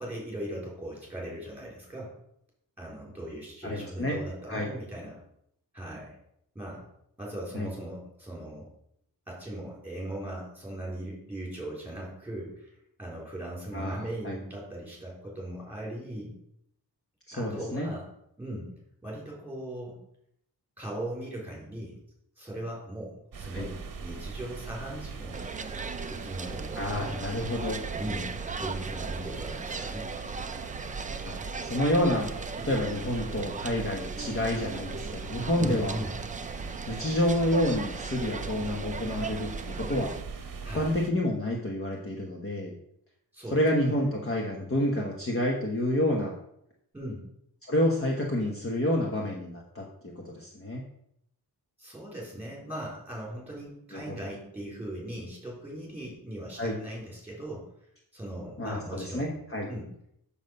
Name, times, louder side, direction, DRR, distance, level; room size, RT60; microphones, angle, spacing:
voice 1, 0.0-2.2 2.8-5.2 5.7-6.2 6.5-6.9 7.2-8.7 9.3-12.7 13.0-16.3 17.3-18.1 18.4-18.7 19.0-20.0 20.8-22.0 22.4-25.4 26.1-27.3 27.9-30.1 35.6-36.1 40.6-40.9 43.3-44.2 46.9-47.2 51.8-57.7 58.1-59.3 59.7-59.9, right 1 dB, 5° right, -4 dB, 4.1 m, -39 dB
voice 2, 3.6-4.2 4.5-4.7 7.5-7.7 13.7-14.4 17.3-17.9 23.5-23.7 26.8-27.8 31.2-31.3 31.6-32.3 32.6-35.9 36.9-39.5 39.8-40.1 40.7-42.7 43.5-46.3 47.7-50.8 53.9-54.2 56.6-56.8 58.6-59.7, left 1 dB, 35° left, -1 dB, 1.1 m, -29 dB
sound 1, 23.3-41.1, right 5 dB, 55° right, 0.9 m, -40 dB
sound 2, 25.3-40.2, right 4 dB, 20° right, 0.3 m, -39 dB
7.4 x 6.9 x 5.3 m, 0.75 s
wide cardioid pair, 170°, 40 cm